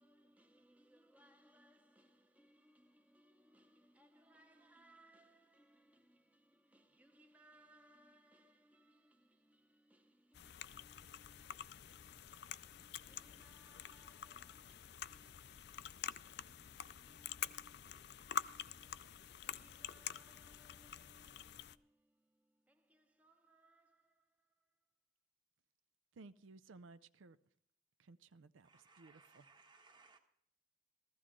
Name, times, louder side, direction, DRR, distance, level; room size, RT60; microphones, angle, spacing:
voice 1, 0.0-24.9, right 1 dB, 10° right, 0.7 m, -69 dB
sound 1, 10.3-21.7, left 9 dB, 55° left, 0.4 m, -47 dB
voice 2, 26.1-27.4 28.0-29.4, right 3 dB, 85° right, 0.5 m, -58 dB
voice 3, 28.6-30.2, right 3 dB, 25° right, 1.3 m, -65 dB
15.0 x 14.0 x 3.7 m
head